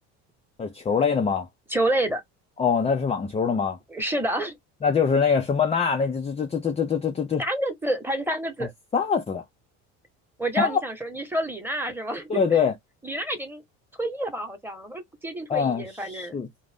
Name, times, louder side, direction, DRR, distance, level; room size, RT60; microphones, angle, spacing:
voice 1, 0.6-1.5 2.6-3.8 4.8-7.4 8.6-9.4 10.6-10.8 12.3-12.7 15.5-16.5, left 6 dB, 20° left, 0.5 m, -24 dB
voice 2, 1.7-2.2 3.9-4.6 7.4-8.7 10.4-12.6 13.0-13.6 14.0-16.4, right 1 dB, 5° right, 1.1 m, -28 dB
2.5 x 2.1 x 3.4 m
supercardioid pair, 100°, 36 cm